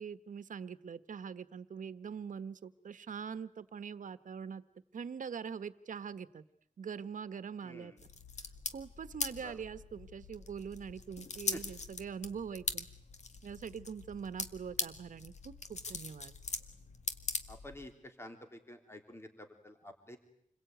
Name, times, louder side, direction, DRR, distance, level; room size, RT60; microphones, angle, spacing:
voice 1, 0.0-4.6 4.9-6.4 6.8-7.9 8.7-12.9 13.4-16.3, right 6 dB, 85° right, 13 dB, 1.3 m, -43 dB
sound 1, 8.0-17.9, left 4 dB, 60° left, 2.0 m, -41 dB
voice 2, 17.5-20.2, left 1 dB, 20° left, 5 dB, 3.6 m, -49 dB
28.5 x 22.0 x 9.3 m, 0.70 s
wide cardioid pair, 105°, 13 cm